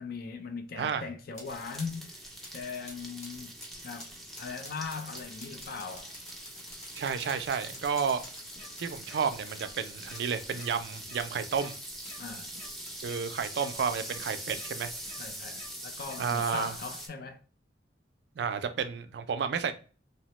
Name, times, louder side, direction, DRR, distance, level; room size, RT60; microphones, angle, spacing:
voice 1, 0.0-2.2 2.5-3.5 3.8-6.1 12.2-12.6 15.2-17.4, left 5 dB, 55° left, 0.4 m, -40 dB
sound 1, 1.3-2.0 2.4-9.6 10.1-10.8 11.2-11.4 11.7-13.0 13.4-13.7 14.0-14.7, left 2 dB, 40° left, 1.0 m, -51 dB
sound 2, 1.4-17.1, right 1 dB, ahead, 0.4 m, -43 dB
voice 2, 6.9-8.2 8.8-11.8 13.0-14.9 16.2-16.7 18.4-19.7, right 6 dB, 65° right, 0.3 m, -31 dB
sound 3, 8.5-8.7 9.0-9.2 9.5-9.7 10.0-10.2 10.5-10.7 11.0-11.2 11.5-11.7 12.0-12.2 12.5-12.7 13.0-13.2 13.5-13.7 14.0-14.2 14.5-14.7 15.0-15.2 15.5-15.7 16.0-16.2, left 2 dB, 85° left, 1.0 m, -50 dB
2.8 x 2.0 x 2.9 m
head